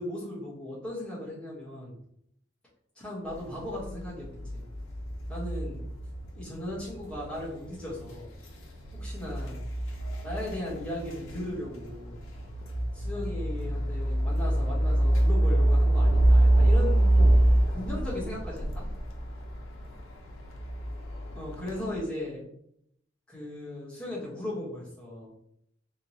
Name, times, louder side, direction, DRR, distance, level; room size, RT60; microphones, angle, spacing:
voice 1, 0.0-1.9 2.9-4.6 5.3-5.8 6.3-8.3 8.9-9.6 10.2-12.2 12.9-17.1 17.7-18.8 21.3-22.4 23.3-25.3, left 1 dB, 5° left, -8 dB, 1.4 m, -37 dB
sound 1, 3.3-22.0, right 1 dB, 85° left, 0.8 m, -27 dB
3.5 x 2.9 x 3.0 m, 0.72 s
head